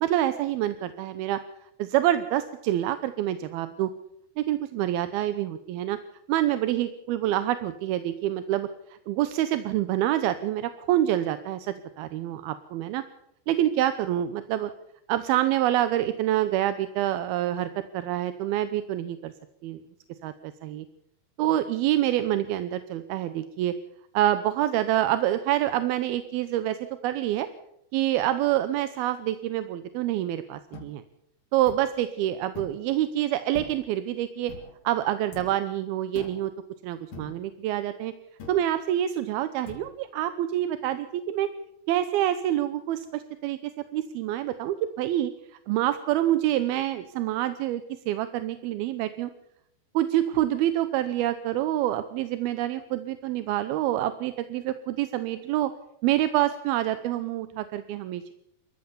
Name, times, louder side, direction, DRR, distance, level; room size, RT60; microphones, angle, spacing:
voice 1, 0.0-1.4 1.8-3.9 4.4-6.0 6.3-8.7 9.1-13.0 13.5-14.7 15.1-19.3 19.6-19.8 20.2-20.9 21.4-23.7 24.1-26.8 27.0-27.5 27.9-31.0 31.5-34.5 34.8-36.5 36.8-38.1 38.5-41.5 41.9-43.6 43.9-45.3 45.7-49.3 49.9-55.7 56.0-58.3, right 13 dB, 75° right, 11 dB, 2.6 m, -26 dB
sound 1, 30.7-30.9 31.7-31.9 32.5-32.8 33.5-34.0 34.5-34.8 35.3-35.6 36.2-36.5 37.1-37.5 38.4-38.7 39.7-39.9, left 4 dB, 50° left, 5.0 m, -43 dB
27.5 x 14.5 x 7.1 m, 0.77 s
omnidirectional pair, 4.9 m